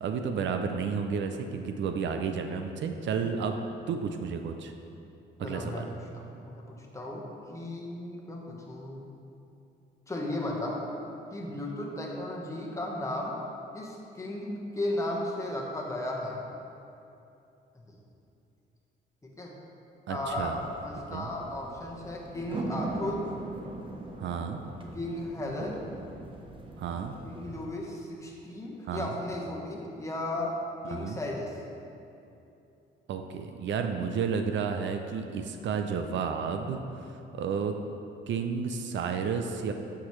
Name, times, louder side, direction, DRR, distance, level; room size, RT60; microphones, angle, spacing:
voice 1, 0.0-3.6 3.9-4.7 5.4-5.8 20.1-20.6 21.1-21.3 24.2-24.6 26.8-27.1 28.9-29.1 30.8-31.2 33.1-36.8 37.3-37.7 38.3-39.7, right 6 dB, 65° right, 6 dB, 0.5 m, -31 dB
voice 2, 5.4-5.9 6.1-9.0 10.1-10.8 11.3-13.4 13.7-16.4 17.7-17.9 19.2-19.5 20.1-20.6 20.8-23.2 24.9-25.8 27.2-30.6 30.9-31.6, left 1 dB, 15° left, -2 dB, 1.2 m, -35 dB
sound 1, 20.3-27.7, right 2 dB, 25° right, 0.9 m, -41 dB
8.8 x 6.0 x 3.2 m, 2.8 s
cardioid pair, 90°, 20 cm